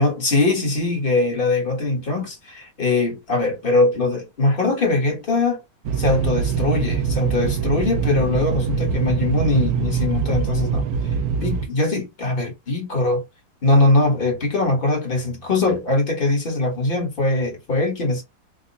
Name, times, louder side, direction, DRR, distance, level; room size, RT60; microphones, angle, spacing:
voice 1, 0.0-5.6 6.0-10.8 11.4-13.2 13.6-18.2, left 2 dB, 35° left, 0.9 m, -21 dB
sound 1, 5.8-11.7, right 7 dB, 75° right, 0.8 m, -23 dB
3.7 x 2.1 x 3.9 m
omnidirectional pair, 2.1 m